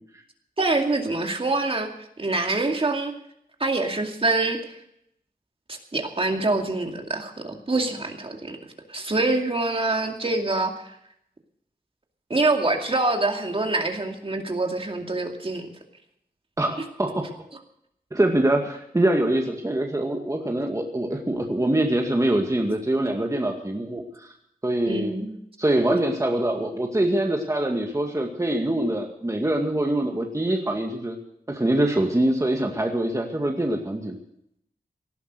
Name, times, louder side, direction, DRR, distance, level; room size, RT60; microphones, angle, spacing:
voice 1, 0.6-1.9 2.2-3.1 3.6-4.6 5.7-8.6 8.9-10.9 12.3-15.7 24.9-25.3, right 2 dB, 40° right, 3 dB, 2.4 m, -25 dB
voice 2, 16.6-17.2 18.1-24.3 24.6-25.1 25.6-31.2 31.5-34.2, right 1 dB, 20° right, 2 dB, 2.0 m, -24 dB
18.5 x 11.0 x 6.2 m, 0.74 s
wide cardioid pair, 70°, 15 cm